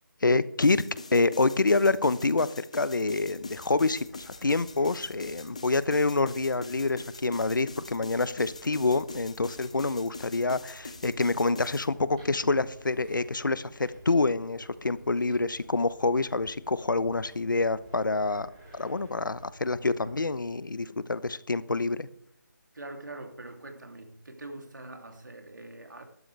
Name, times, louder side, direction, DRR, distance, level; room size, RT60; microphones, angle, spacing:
voice 1, 0.2-0.8 1.1-22.1, left 3 dB, 90° left, 16 dB, 0.9 m, -27 dB
sound 1, 0.6-11.9, left 3 dB, 20° left, 0.5 m, -44 dB
sound 2, 3.2-20.3, right 1 dB, 15° right, 4.5 m, -53 dB
voice 2, 22.7-26.0, right 2 dB, 70° right, 4 dB, 2.9 m, -43 dB
14.0 x 12.5 x 3.4 m, 0.72 s
figure-of-eight pair, 180°, 10 cm